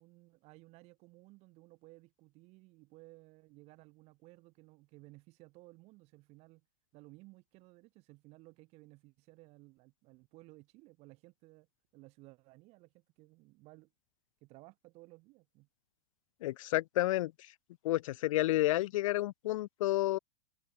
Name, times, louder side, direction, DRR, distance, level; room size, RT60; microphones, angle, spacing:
voice 1, 0.0-6.6 6.9-11.7 11.9-13.9 14.4-15.7, right 23 dB, 35° right, 7.0 m, -58 dB
voice 2, 16.4-17.3 17.8-20.2, left 16 dB, 60° left, 0.5 m, -30 dB
supercardioid pair, 165°, 19 cm